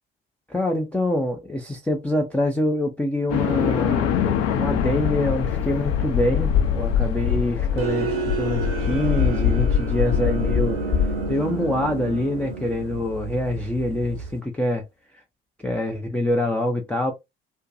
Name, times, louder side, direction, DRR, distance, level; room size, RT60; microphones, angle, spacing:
voice 1, 0.5-4.1 4.5-14.8 15.6-17.1, left 1 dB, 5° left, 0.4 m, -25 dB
sound 1, 3.3-11.8, left 8 dB, 55° left, 0.6 m, -23 dB
sound 2, 7.8-14.4, right 4 dB, 70° right, 0.8 m, -30 dB
2.5 x 2.2 x 2.5 m
figure-of-eight pair, 55°, 30 cm